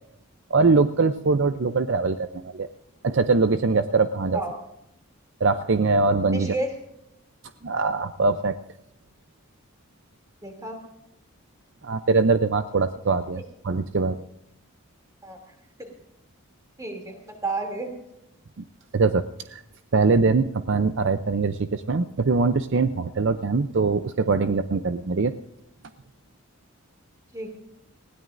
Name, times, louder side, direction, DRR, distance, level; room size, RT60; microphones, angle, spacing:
voice 1, 0.5-2.7 3.0-4.4 5.4-6.5 7.6-8.6 11.8-14.2 18.9-19.2 19.5-19.6 19.9-25.3, right 4 dB, 55° right, 11 dB, 0.5 m, -22 dB
voice 2, 6.3-6.7 10.4-10.8 15.2-15.4 15.8-15.9 16.8-18.0 27.3-27.5, right 2 dB, 15° right, 3 dB, 2.8 m, -31 dB
20.0 x 16.5 x 2.6 m, 0.84 s
head